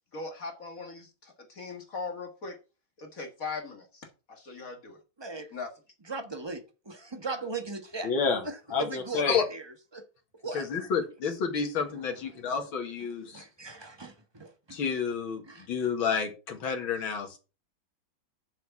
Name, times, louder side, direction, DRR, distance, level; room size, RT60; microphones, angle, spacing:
voice 1, 0.1-2.6 3.0-5.0 5.5-5.7, left 4 dB, 45° left, 2.0 m, -39 dB
voice 2, 5.2-5.5 6.0-8.1 8.4-10.1 10.4-10.7 11.9-12.5 13.3-14.8 15.4-15.9, right 3 dB, 15° right, 1.1 m, -39 dB
voice 3, 8.0-8.4 8.7-9.4 10.5-13.4 14.7-15.4 15.7-17.4, left 6 dB, 90° left, 2.5 m, -29 dB
7.1 x 6.2 x 7.1 m
omnidirectional pair, 2.1 m